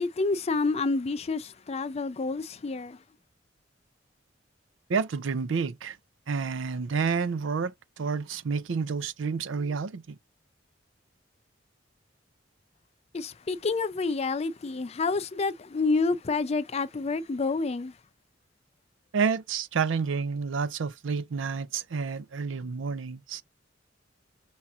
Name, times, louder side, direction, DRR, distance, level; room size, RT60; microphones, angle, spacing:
voice 1, 0.0-3.0 13.1-17.9, left 3 dB, 35° left, 0.4 m, -28 dB
voice 2, 4.9-6.0 6.3-10.2 19.1-23.4, right 5 dB, 85° right, 0.5 m, -29 dB
5.7 x 2.8 x 2.4 m
head